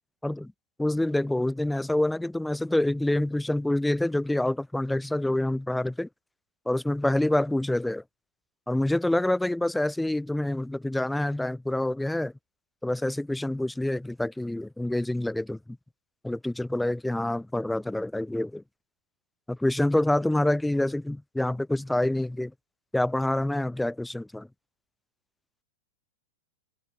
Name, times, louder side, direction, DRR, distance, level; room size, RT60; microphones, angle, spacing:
voice 1, 0.8-6.1 6.7-8.0 8.7-12.3 12.8-15.6 16.2-18.6 19.5-22.5 22.9-24.5, left 1 dB, 5° left, 0.9 m, -27 dB
hypercardioid pair, 135°, 0 cm